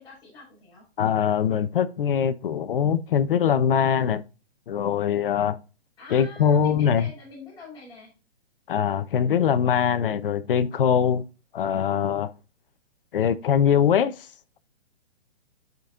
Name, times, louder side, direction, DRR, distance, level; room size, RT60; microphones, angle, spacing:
voice 1, 0.0-0.8 6.0-8.1, left 3 dB, 10° left, 4.4 m, -44 dB
voice 2, 1.0-4.2 4.7-5.6 6.1-7.1 8.7-11.2 11.5-12.3 13.1-14.3, left 8 dB, 55° left, 0.7 m, -22 dB
12.0 x 5.2 x 2.4 m
hypercardioid pair, 160°, 33 cm